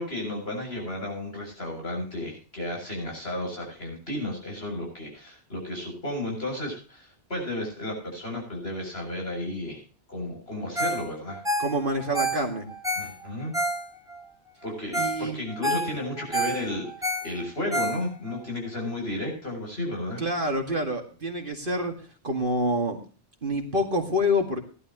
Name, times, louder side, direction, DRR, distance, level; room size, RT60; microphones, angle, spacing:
voice 1, 0.0-9.8 10.1-11.4 13.0-13.5 14.6-20.2, left 1 dB, 60° left, 1 dB, 7.6 m, -33 dB
Ringtone, 10.7-11.0 11.3-14.2 14.6-14.7 14.9-15.2 15.5-18.4 18.8-18.9, right 1 dB, 5° right, 2.3 m, -29 dB
voice 2, 11.6-12.7 15.0-15.4 20.2-21.9 22.2-23.0 23.4-24.6, left 1 dB, 50° right, 4 dB, 2.3 m, -27 dB
18.0 x 12.0 x 3.0 m, 0.37 s
omnidirectional pair, 1.2 m